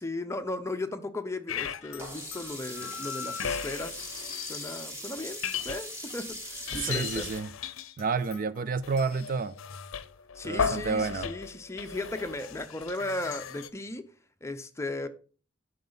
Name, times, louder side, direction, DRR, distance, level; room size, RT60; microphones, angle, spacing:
voice 1, 0.0-4.1 4.4-7.3 10.3-14.1 14.4-15.1, left 2 dB, 15° left, 0.6 m, -36 dB
sound 1, 1.5-2.0 2.3-4.8 5.2-6.2 6.5-13.7, left 7 dB, 75° left, 0.6 m, -36 dB
Sink (filling or washing), 2.0-7.4, equal, 15° right, 1.9 m, -40 dB
voice 2, 6.7-7.5 8.0-9.5 10.4-11.3, right 5 dB, 40° right, 0.3 m, -30 dB
9.0 x 5.8 x 4.0 m
head